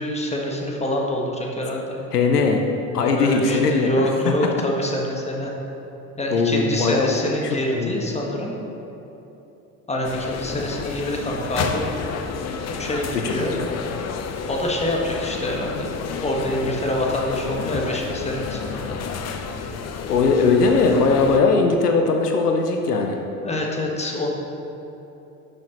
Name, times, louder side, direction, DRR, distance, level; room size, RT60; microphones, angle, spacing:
voice 1, 0.0-1.9 3.1-5.5 6.2-8.6 9.9-11.9 12.8-13.6 14.5-15.9 16.2-18.9 23.4-24.3, left 1 dB, 15° left, -1 dB, 1.5 m, -26 dB
voice 2, 2.1-2.6 2.9-3.9 6.3-7.1 7.4-7.9 13.1-13.6 20.1-23.2, left 4 dB, 90° left, 3 dB, 0.7 m, -19 dB
sound 1, 10.0-21.4, left 5 dB, 35° left, 0.7 m, -31 dB
11.0 x 6.3 x 3.0 m, 3.0 s
hypercardioid pair, 65°, 45 cm